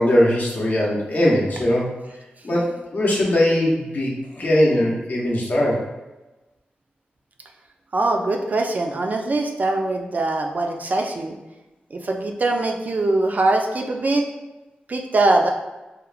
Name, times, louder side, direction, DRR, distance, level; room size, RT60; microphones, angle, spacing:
voice 1, 0.0-1.9 2.4-5.8, left 1 dB, 55° left, -5 dB, 0.6 m, -20 dB
voice 2, 7.9-11.4 11.9-14.2 14.9-15.5, right 2 dB, 50° right, 2 dB, 0.4 m, -22 dB
2.9 x 2.0 x 2.4 m, 1.1 s
cardioid pair, 65°, 4 cm